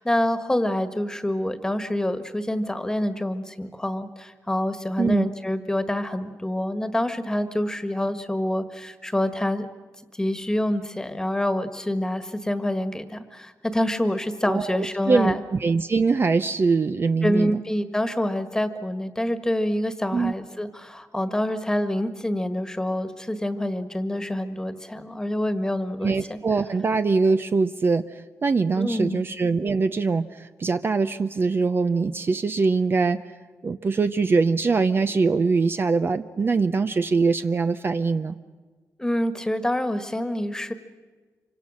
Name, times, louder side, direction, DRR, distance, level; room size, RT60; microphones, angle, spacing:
voice 1, 0.0-9.7 10.1-15.4 17.2-26.4 28.8-29.2 39.0-40.7, left 1 dB, 10° left, 10 dB, 1.6 m, -26 dB
voice 2, 5.0-5.3 14.5-17.6 20.1-20.3 26.0-33.2 33.6-38.4, right 4 dB, 40° right, 9 dB, 0.7 m, -23 dB
26.5 x 25.0 x 6.4 m, 1.4 s
cardioid pair, 100°, 6 cm